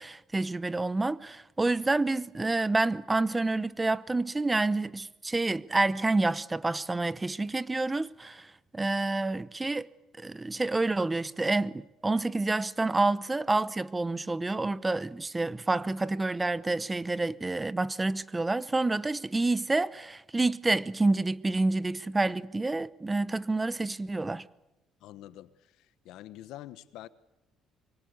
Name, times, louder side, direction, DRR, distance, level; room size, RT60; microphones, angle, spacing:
voice 1, 0.0-8.5 8.7-9.9 10.2-24.5, right 2 dB, 15° right, 0.8 m, -28 dB
voice 2, 25.0-27.1, left 14 dB, 80° left, 1.3 m, -46 dB
25.5 x 23.5 x 8.3 m
cardioid pair, 105°, 0 cm